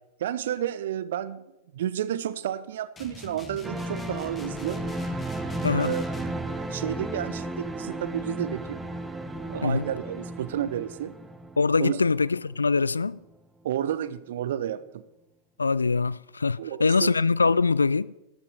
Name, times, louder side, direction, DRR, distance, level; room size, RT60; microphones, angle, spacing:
voice 1, 0.2-1.4 1.7-4.8 5.7-6.1 6.6-8.8 9.5-11.1 11.8-12.0 13.6-14.8 16.6-17.1, right 10 dB, 60° right, 0.7 m, -31 dB
sound 1, 3.0-6.4, left 4 dB, 20° left, 1.4 m, -43 dB
sound 2, 3.6-12.8 13.1-13.2, right 1 dB, 10° right, 1.1 m, -34 dB
voice 2, 5.6-6.0 9.6-9.9 11.6-13.2 15.6-18.1, left 4 dB, 75° left, 0.3 m, -23 dB
13.0 x 11.5 x 4.7 m
figure-of-eight pair, 90°, 0 cm